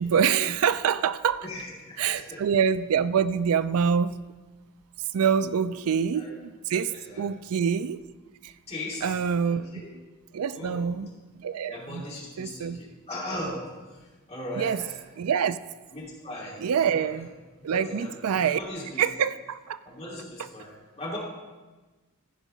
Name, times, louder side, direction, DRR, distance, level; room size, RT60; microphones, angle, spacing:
voice 1, 0.0-1.5 2.0-4.2 5.1-8.0 8.4-8.5 9.0-9.6 9.9-10.0 10.3-11.1 11.4-12.1 12.4-12.8 14.6-14.8 15.2-15.6 16.6-17.3 17.6-18.6 19.0-19.8, right 7 dB, 90° right, 15 dB, 0.4 m, -25 dB
voice 2, 1.4-2.4 5.7-5.8 6.1-6.3 6.7-7.3 8.7-9.1 9.4-9.9 10.5-10.9 11.7-15.0 15.9-17.2 17.6-19.0 19.8-21.2, left 1 dB, 30° left, -4 dB, 2.8 m, -38 dB
14.5 x 5.4 x 5.1 m, 1.3 s
head